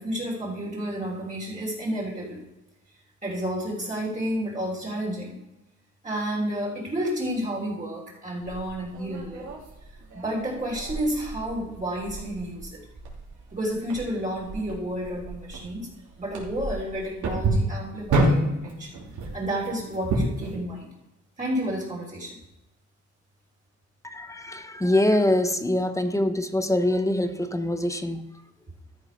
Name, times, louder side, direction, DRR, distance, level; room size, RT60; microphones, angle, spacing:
voice 1, 0.0-2.4 3.2-5.4 6.0-9.5 10.1-12.8 13.5-15.9 16.2-18.9 19.3-20.9 21.4-22.4, equal, 25° right, 3.4 m, -31 dB
sound 1, 8.4-20.5, right 1 dB, 70° right, 2.9 m, -30 dB
voice 2, 24.0-28.3, left 1 dB, 10° left, 0.9 m, -24 dB
13.5 x 5.8 x 5.3 m
cardioid pair, 90°, 30 cm